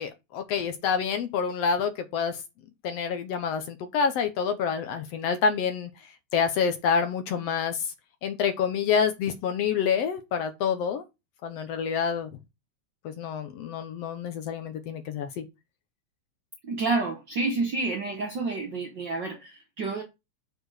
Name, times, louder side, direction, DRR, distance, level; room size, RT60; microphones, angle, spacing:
voice 1, 0.0-2.4 2.8-5.9 6.3-7.8 8.2-11.0 11.4-12.3 13.1-15.4, left 6 dB, 65° left, 1.8 m, -27 dB
voice 2, 16.6-20.0, right 3 dB, 60° right, 1.2 m, -29 dB
7.8 x 4.5 x 4.8 m
omnidirectional pair, 3.4 m